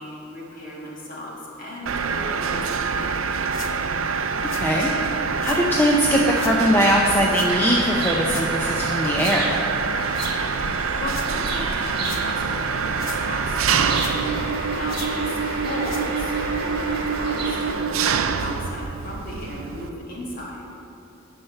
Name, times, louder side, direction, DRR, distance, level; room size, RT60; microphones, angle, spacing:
voice 1, 0.0-3.7 11.0-14.1 14.4-20.7, left 1 dB, 40° left, -4 dB, 1.9 m, -35 dB
Mechanisms, 1.9-19.9, right 5 dB, 80° right, 0.4 m, -26 dB
sound 1, 2.7-2.8 3.5-3.7 4.4-4.7 5.4-5.6 6.3-6.6 7.3-7.5 8.2-8.5 9.0-9.4 10.1-10.4 11.0-11.3 11.9-12.2 12.8-13.3 13.9-14.4 14.9-15.1 15.7-16.1 16.7-16.8 17.2-17.3 18.1-18.2, left 7 dB, 70° left, 0.8 m, -39 dB
voice 2, 4.5-4.9 5.4-9.6, equal, 10° left, -3 dB, 0.5 m, -21 dB
sound 2, 7.5-17.7, right 2 dB, 50° right, 1.5 m, -31 dB
9.7 x 5.7 x 5.7 m, 2.8 s
head